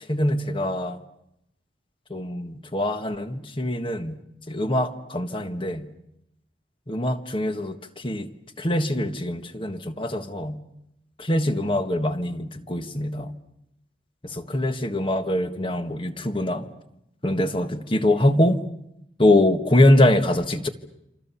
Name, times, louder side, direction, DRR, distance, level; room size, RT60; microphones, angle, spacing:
voice 1, 0.1-1.0 2.1-4.2 4.5-5.9 6.9-8.3 8.6-10.6 11.2-13.3 14.3-16.7 17.2-18.6 19.2-20.7, left 1 dB, 30° left, 8 dB, 1.6 m, -23 dB
27.5 x 26.5 x 7.1 m, 0.82 s
head